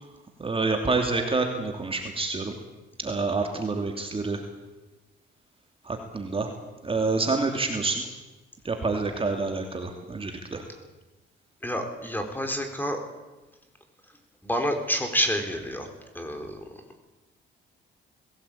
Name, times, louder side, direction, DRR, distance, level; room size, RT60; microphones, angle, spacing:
voice 1, 0.4-2.5 3.0-4.4 5.9-6.5 6.8-8.0 8.6-10.6, right 3 dB, 30° right, 3 dB, 2.8 m, -27 dB
voice 2, 11.6-13.0 14.4-15.9 16.1-16.6, equal, 10° left, 5 dB, 4.5 m, -28 dB
20.0 x 17.5 x 8.8 m, 1.1 s
cardioid pair, 90°, 20 cm